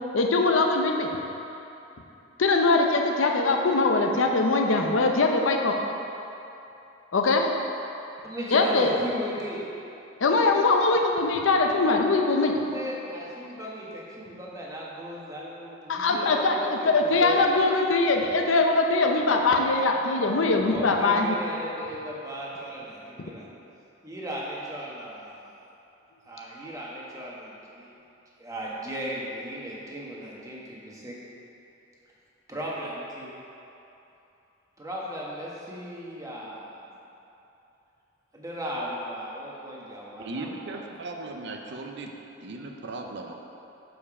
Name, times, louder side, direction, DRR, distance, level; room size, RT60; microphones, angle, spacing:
voice 1, 0.1-1.1 2.4-5.7 7.1-7.5 8.5-8.9 10.2-12.5 15.9-21.4, left 3 dB, 90° left, 2 dB, 0.7 m, -22 dB
voice 2, 8.2-9.7 12.5-17.8 18.1-18.5 20.6-23.4 24.0-25.4 26.3-27.9 28.4-31.1 32.5-33.3 34.8-36.7 38.3-40.8 41.7-41.8, equal, 20° right, -5 dB, 1.2 m, -37 dB
voice 3, 40.2-42.1 42.4-43.3, right 2 dB, 65° right, 2 dB, 0.6 m, -37 dB
7.1 x 5.2 x 4.8 m, 2.9 s
head